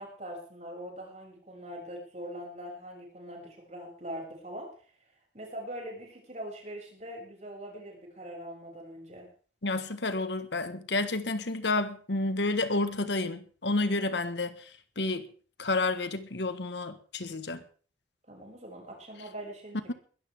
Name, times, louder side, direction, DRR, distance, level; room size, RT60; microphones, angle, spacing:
voice 1, 0.0-4.7 5.3-9.3 18.3-19.9, equal, 40° right, 7.0 m, -42 dB
voice 2, 9.6-14.7 15.0-15.3 15.6-17.6, left 2 dB, 75° left, 1.5 m, -30 dB
21.5 x 13.5 x 3.6 m
head